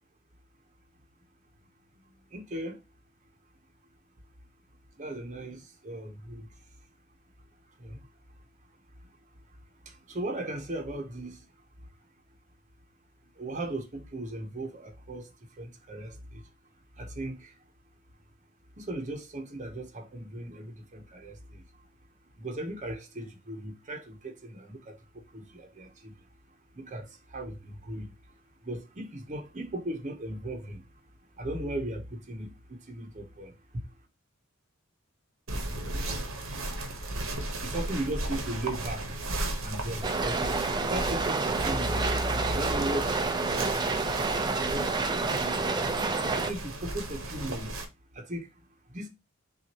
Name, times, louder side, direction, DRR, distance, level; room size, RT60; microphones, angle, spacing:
voice 1, 2.0-2.8 5.0-6.7 7.8-8.1 9.0-9.6 9.8-11.5 11.8-11.9 13.3-16.5 17.0-17.6 18.8-21.9 22.3-30.9 31.4-33.9 37.6-39.2 39.5-43.9 44.6-45.1 46.3-47.8 48.1-49.1, right 1 dB, 35° right, 0.8 m, -37 dB
sound 1, 35.5-47.8, right 2 dB, 80° right, 1.0 m, -36 dB
sound 2, 40.0-46.5, right 3 dB, 20° right, 0.4 m, -29 dB
6.0 x 2.5 x 2.9 m
head